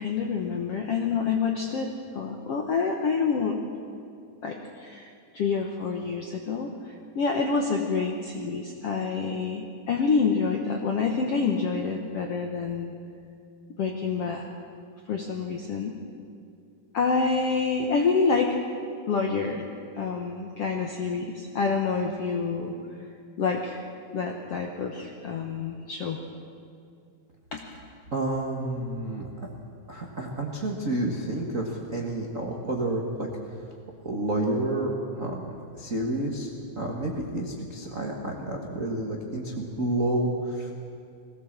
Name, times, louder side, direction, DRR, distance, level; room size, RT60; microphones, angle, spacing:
voice 1, 0.0-3.6 4.4-12.9 13.8-14.4 15.1-16.0 16.9-18.6 19.1-19.6 19.9-22.7 23.4-23.8 24.1-26.2 27.5-27.6, left 5 dB, 70° left, 2 dB, 1.4 m, -27 dB
voice 2, 28.1-29.5 29.9-33.3 34.0-36.5 36.8-40.7, right 1 dB, 75° right, -1 dB, 0.7 m, -30 dB
21.0 x 16.5 x 7.4 m, 2.5 s
omnidirectional pair, 4.4 m